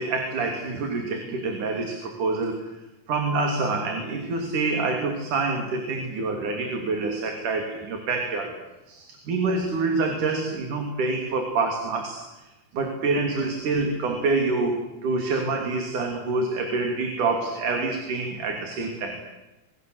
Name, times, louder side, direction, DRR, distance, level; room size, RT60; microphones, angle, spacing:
voice 1, 0.0-2.7 3.1-8.6 8.9-12.4 12.7-19.2, right 3 dB, 75° right, 3 dB, 4.5 m, -26 dB
28.0 x 23.0 x 8.0 m, 1.0 s
omnidirectional pair, 3.7 m